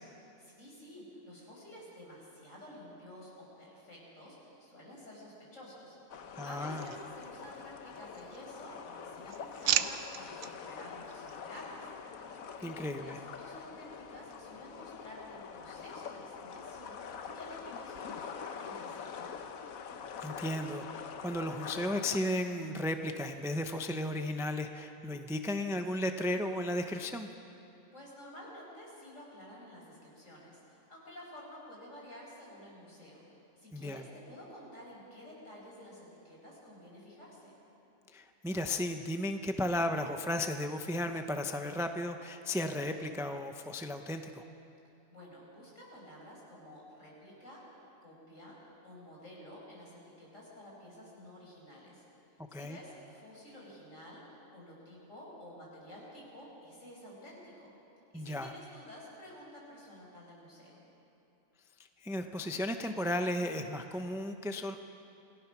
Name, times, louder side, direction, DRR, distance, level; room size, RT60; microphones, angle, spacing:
voice 1, 0.4-11.9 12.6-19.2 27.9-33.2 33.6-37.6 45.1-47.6 48.0-52.1 52.5-57.7 58.1-60.8, equal, 65° left, -3 dB, 5.9 m, -51 dB
sound 1, 6.1-22.2, left 6 dB, 80° left, 1.4 m, -45 dB
voice 2, 6.4-6.8 12.6-13.2 20.2-27.3 33.7-34.0 38.1-44.4 52.5-52.8 58.1-58.5 62.0-64.8, left 1 dB, 5° right, 6 dB, 0.6 m, -34 dB
sound 2, 6.6-7.7 8.1-8.7 9.1-10.5 11.1-11.4, right 10 dB, 80° right, 1.1 m, -36 dB
27.5 x 18.0 x 6.1 m, 2.8 s
omnidirectional pair, 1.4 m